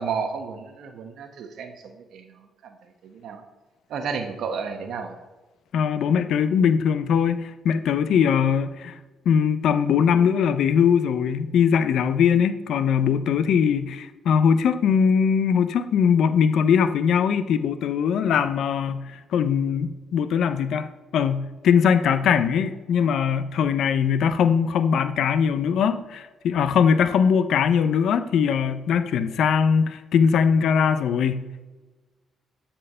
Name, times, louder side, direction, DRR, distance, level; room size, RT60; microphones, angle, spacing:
voice 1, 0.0-2.8 3.0-3.4 3.9-5.1, right 5 dB, 75° right, 1.1 m, -32 dB
voice 2, 5.7-9.0 9.3-31.6, left 7 dB, 70° left, 0.5 m, -21 dB
12.5 x 4.4 x 5.5 m
cardioid pair, 90°, 0 cm